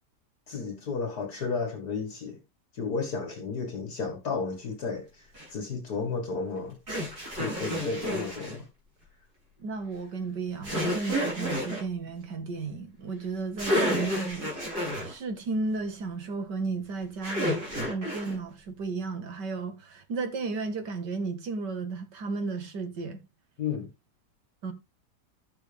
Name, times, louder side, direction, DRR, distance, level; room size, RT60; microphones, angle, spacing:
voice 1, 0.5-2.4 2.7-6.8 7.3-8.7 23.6-23.9, left 4 dB, 65° left, 2.3 m, -33 dB
sound 1, 5.3-5.5 6.9-8.6 10.6-11.8 13.3-13.4 13.6-15.1 17.2-18.3, equal, 65° right, 7.7 m, -30 dB
voice 2, 9.6-14.5 15.0-23.2 24.6-24.7, right 4 dB, 80° right, 2.3 m, -33 dB
11.5 x 7.4 x 3.4 m
omnidirectional pair, 1.8 m